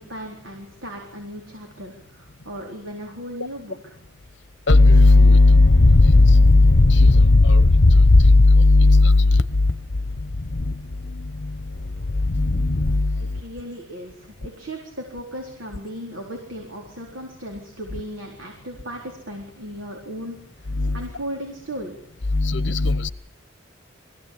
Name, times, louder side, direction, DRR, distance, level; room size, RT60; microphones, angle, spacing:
voice 1, 0.0-4.0 13.2-21.9, equal, 75° right, 4.2 m, -36 dB
voice 2, 4.7-9.2 12.4-13.1 20.8-21.0 22.3-23.1, left 2 dB, 65° left, 1.0 m, -13 dB
23.0 x 16.5 x 8.6 m
head